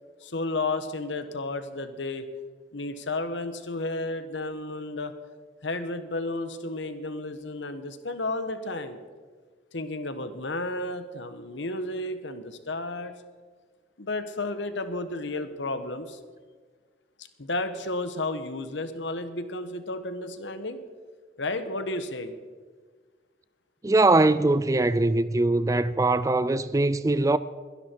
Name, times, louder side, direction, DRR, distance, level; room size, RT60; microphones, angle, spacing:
voice 1, 0.2-2.3 2.7-5.1 5.6-9.0 9.7-13.2 14.0-16.2 17.4-20.8 21.4-22.4, left 2 dB, 75° left, 1.3 m, -32 dB
voice 2, 23.8-27.4, right 2 dB, 15° right, 0.4 m, -22 dB
22.0 x 11.5 x 4.6 m
head